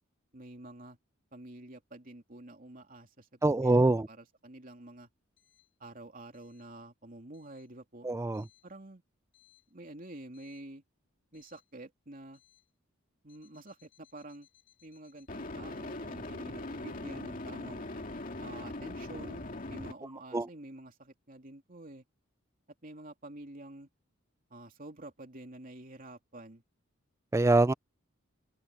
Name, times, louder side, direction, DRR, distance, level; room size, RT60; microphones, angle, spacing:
voice 1, 0.3-1.0 1.3-5.1 5.8-8.1 8.6-9.0 9.7-10.8 11.3-12.4 13.2-14.5 14.8-17.9 18.4-19.4 19.7-22.0 22.8-23.9 24.5-26.6, right 1 dB, 40° right, 3.0 m, -48 dB
voice 2, 3.4-4.1 8.0-8.4 20.3-20.5 27.3-27.7, right 2 dB, 15° right, 0.3 m, -24 dB
sound 1, 10.4-10.6 15.3-19.9, left 2 dB, 40° left, 2.5 m, -41 dB
open air
head